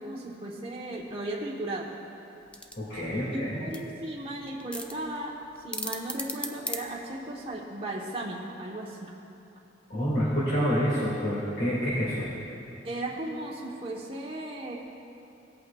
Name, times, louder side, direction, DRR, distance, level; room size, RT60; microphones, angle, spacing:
voice 1, 0.0-1.9 3.3-9.1 12.8-14.7, right 1 dB, 35° right, -3 dB, 1.1 m, -36 dB
sound 1, 2.4-7.6, left 1 dB, 5° left, 0.5 m, -39 dB
voice 2, 2.8-3.6 9.9-12.3, equal, 60° left, -8 dB, 2.1 m, -27 dB
18.0 x 8.4 x 2.3 m, 2.9 s
head